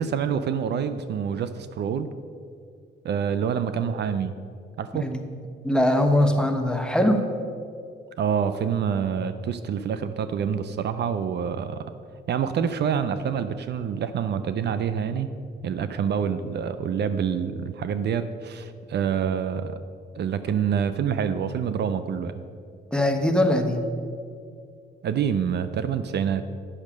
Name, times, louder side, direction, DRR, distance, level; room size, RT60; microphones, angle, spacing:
voice 1, 0.0-2.1 3.0-4.3 4.8-5.1 8.2-11.9 12.3-15.3 15.6-19.8 20.2-22.4 25.0-26.4, right 7 dB, 60° right, 11 dB, 0.5 m, -26 dB
voice 2, 5.6-7.2 22.9-23.8, left 1 dB, 5° left, 5 dB, 1.0 m, -21 dB
8.7 x 6.4 x 6.1 m, 2.3 s
cardioid pair, 90°, 20 cm